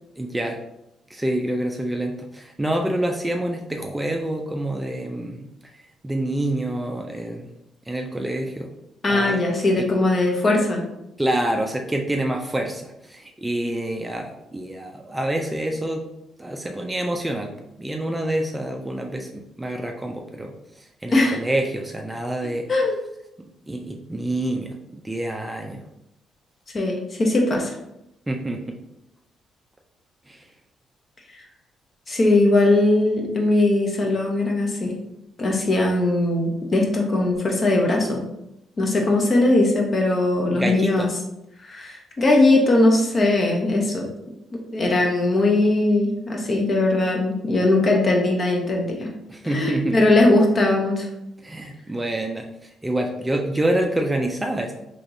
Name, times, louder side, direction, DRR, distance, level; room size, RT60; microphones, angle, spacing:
voice 1, 0.2-0.6 1.1-7.5 7.9-8.7 9.1-9.4 11.2-16.1 16.4-22.7 23.7-25.8 28.3-28.8 30.3-30.5 40.5-41.1 49.3-50.0 51.4-54.7, right 1 dB, 15° right, 2 dB, 0.4 m, -27 dB
voice 2, 9.0-10.8 21.1-21.4 22.7-23.0 26.7-27.7 31.3-31.4 32.1-34.9 35.4-38.2 38.8-41.1 41.6-44.1 44.5-49.1 49.4-51.1, left 2 dB, 40° left, 0 dB, 0.8 m, -20 dB
3.4 x 2.9 x 2.6 m, 0.84 s
cardioid pair, 90°, 0 cm